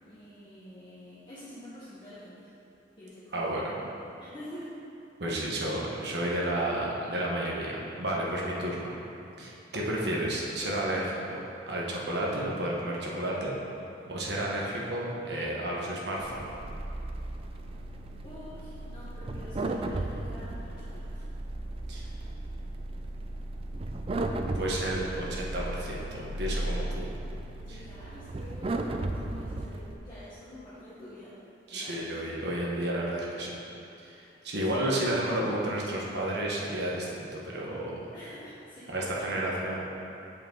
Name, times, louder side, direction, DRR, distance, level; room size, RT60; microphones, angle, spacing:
voice 1, 0.0-2.5 3.0-3.8 4.2-4.7 14.0-14.1 18.2-21.2 27.6-31.3 31.7-32.1 34.7-34.9 38.1-39.2, left 1 dB, 25° left, -12 dB, 1.2 m, -47 dB
voice 2, 3.3-3.7 5.2-8.9 9.4-11.4 11.7-13.5 14.1-16.4 21.9-22.1 24.5-27.1 27.7-27.8 31.7-33.5 34.0-38.0 38.9-39.8, right 1 dB, 70° right, -4 dB, 1.2 m, -31 dB
sound 1, 16.2-29.9, right 2 dB, 30° right, 0.3 m, -35 dB
7.7 x 5.4 x 3.8 m, 2.7 s
head